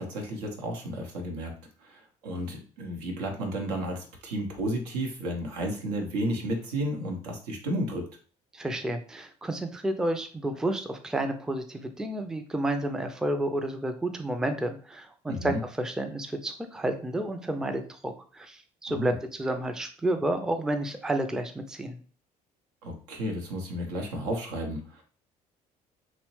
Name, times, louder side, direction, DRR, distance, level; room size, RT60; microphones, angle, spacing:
voice 1, 0.0-1.5 1.8-8.1 15.3-15.6 18.9-19.2 22.8-25.0, right 1 dB, 80° right, 2 dB, 0.7 m, -32 dB
voice 2, 8.5-22.0, right 1 dB, 5° right, 7 dB, 0.4 m, -30 dB
2.8 x 2.0 x 3.1 m, 0.41 s
hypercardioid pair, 55°, 20 cm